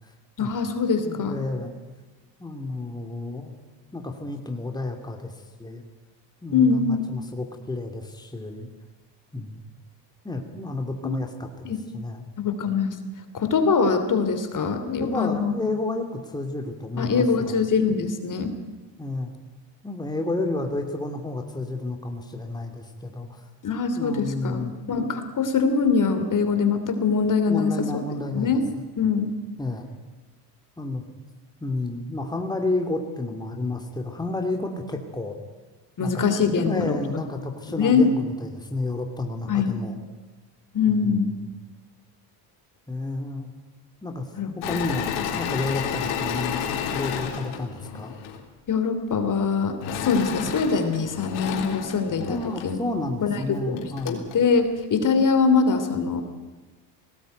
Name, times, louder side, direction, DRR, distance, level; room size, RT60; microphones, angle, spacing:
voice 1, 0.4-1.4 6.5-7.0 11.0-11.1 11.6-11.8 12.4-13.0 13.3-15.5 17.0-18.5 23.6-28.0 28.3-28.7 29.0-29.3 36.0-37.0 37.7-38.1 39.5-39.8 40.7-41.3 44.4-44.5 48.7-52.8 53.2-56.2, left 5 dB, 40° left, 8 dB, 3.2 m, -23 dB
voice 2, 1.0-1.7 2.4-3.5 3.9-5.3 5.6-5.8 6.4-8.7 9.3-9.7 10.2-12.2 14.8-17.6 19.0-19.3 19.8-23.5 24.0-24.7 27.5-28.6 29.6-29.9 30.8-31.0 31.6-35.3 36.0-40.0 40.9-41.2 42.9-43.5 44.0-44.3 44.7-46.6 46.9-48.2 52.3-54.3, left 2 dB, 10° left, 3 dB, 2.8 m, -31 dB
Engine / Mechanisms, 44.6-48.4 49.8-52.7 53.4-53.5 53.8-54.3, left 8 dB, 75° left, 3.7 m, -31 dB
19.5 x 18.0 x 9.3 m, 1.3 s
supercardioid pair, 85°, 50 cm